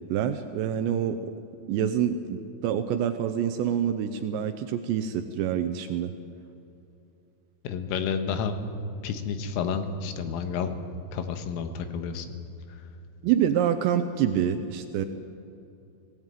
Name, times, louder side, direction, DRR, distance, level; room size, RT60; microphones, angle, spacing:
voice 1, 0.1-1.3 1.7-6.1 13.2-15.1, right 9 dB, 80° right, 9 dB, 2.7 m, -26 dB
voice 2, 7.6-8.6 9.0-10.7 11.1-12.3 12.7-12.8, left 6 dB, 90° left, 7 dB, 4.0 m, -30 dB
21.0 x 17.0 x 9.0 m, 2.8 s
omnidirectional pair, 5.8 m